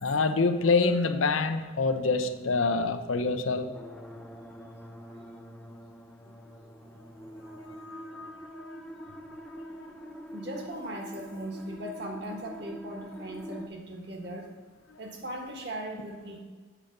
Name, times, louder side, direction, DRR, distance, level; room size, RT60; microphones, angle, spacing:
voice 1, 0.0-3.8 7.6-9.2 9.8-9.9, left 4 dB, 85° left, 9 dB, 0.6 m, -27 dB
sound 1, 3.7-13.7, equal, 5° left, 0.6 m, -45 dB
voice 2, 10.3-14.5 15.0-16.4, right 1 dB, 55° right, 2 dB, 1.5 m, -38 dB
7.3 x 6.5 x 5.2 m, 1.4 s
head